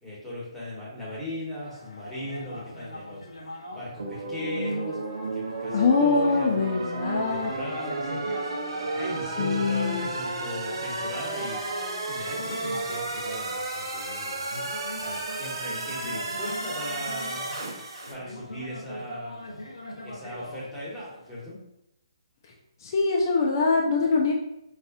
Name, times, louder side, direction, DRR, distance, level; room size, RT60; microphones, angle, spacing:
voice 1, 0.0-3.3 3.7-5.0 5.3-6.6 7.1-8.5 8.9-11.6 12.0-17.4 18.1-19.5 20.0-21.6, left 1 dB, ahead, -9 dB, 1.2 m, -38 dB
sound 1, 1.6-21.4, left 1 dB, 85° left, 0.7 m, -43 dB
sound 2, 4.0-18.1, right 2 dB, 65° right, 0.7 m, -32 dB
voice 2, 5.7-7.5 9.4-10.1 22.8-24.3, left 4 dB, 45° left, -1 dB, 0.5 m, -23 dB
4.1 x 2.4 x 2.5 m, 0.83 s
figure-of-eight pair, 140°, 3 cm